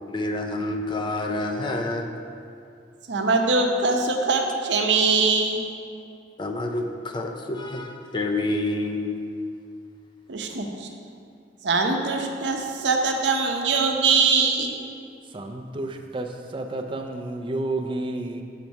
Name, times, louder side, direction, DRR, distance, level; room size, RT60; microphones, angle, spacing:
voice 1, 0.1-2.2 6.4-9.2, left 2 dB, 25° left, 3 dB, 0.4 m, -28 dB
voice 2, 3.1-5.6 10.3-10.9 11.6-14.7, right 4 dB, 80° right, 3 dB, 0.7 m, -22 dB
voice 3, 15.2-18.4, right 2 dB, 30° right, 3 dB, 0.5 m, -31 dB
5.8 x 4.6 x 5.2 m, 2.3 s
head